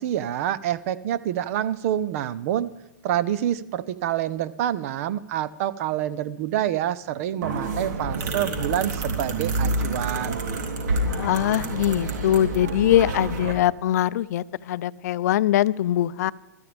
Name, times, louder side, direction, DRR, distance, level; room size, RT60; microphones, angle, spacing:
voice 1, 0.0-2.8 3.0-10.4, right 11 dB, 50° right, 16 dB, 0.8 m, -27 dB
sound 1, 7.4-13.5, right 2 dB, 80° right, 3.3 m, -28 dB
voice 2, 11.1-16.3, left 12 dB, 60° left, 18 dB, 0.5 m, -22 dB
23.0 x 13.5 x 3.4 m, 0.95 s
hypercardioid pair, 150°, 10 cm